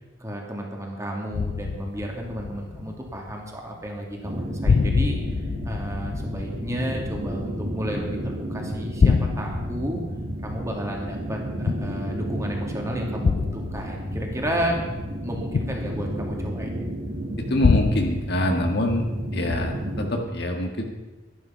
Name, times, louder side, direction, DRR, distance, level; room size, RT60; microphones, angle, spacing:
voice 1, 0.2-10.0 10.4-16.7, equal, 15° right, 0 dB, 2.4 m, -32 dB
sound 1, 1.3-3.6 3.9-4.4 4.6-8.4 8.7-12.4 13.2-16.8 17.6-19.2 19.5-20.0, left 5 dB, 45° left, 0.3 m, -27 dB
sound 2, 4.2-20.1, right 1 dB, 55° right, 1.9 m, -32 dB
voice 2, 17.5-19.1 19.3-20.8, left 1 dB, 60° left, 3 dB, 1.8 m, -24 dB
12.0 x 11.0 x 5.8 m, 1.1 s
head